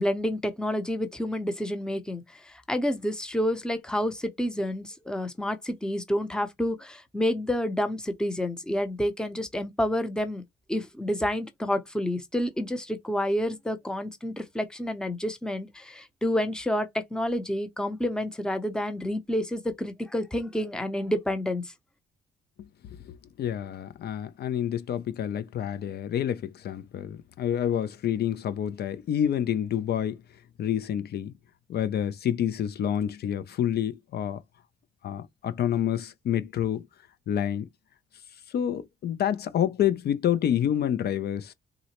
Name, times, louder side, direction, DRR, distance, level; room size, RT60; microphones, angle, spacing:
voice 1, 0.0-10.4 10.7-21.6, left 1 dB, 5° left, 0.6 m, -29 dB
voice 2, 23.1-30.2 30.6-31.3 31.7-34.4 35.0-36.9 37.3-37.7 38.5-41.5, left 10 dB, 60° left, 0.4 m, -28 dB
3.8 x 2.1 x 2.8 m
cardioid pair, 105°, 19 cm